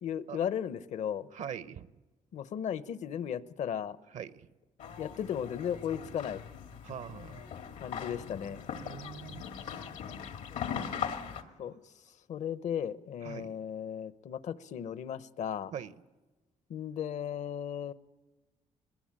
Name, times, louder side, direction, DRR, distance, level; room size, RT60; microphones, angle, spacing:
voice 1, 0.0-1.3 2.3-4.0 5.0-6.4 7.8-8.6 11.6-11.7 12.3-15.7 16.7-17.9, left 9 dB, 70° left, 0.9 m, -35 dB
voice 2, 1.3-1.9 4.1-4.5 6.8-7.4 8.8-9.8 11.3-11.5 13.2-13.6 15.7-15.9, right 8 dB, 70° right, 0.8 m, -43 dB
sound 1, 4.8-11.4, left 7 dB, 90° left, 1.8 m, -40 dB
22.0 x 20.5 x 8.8 m
cardioid pair, 95°, 13 cm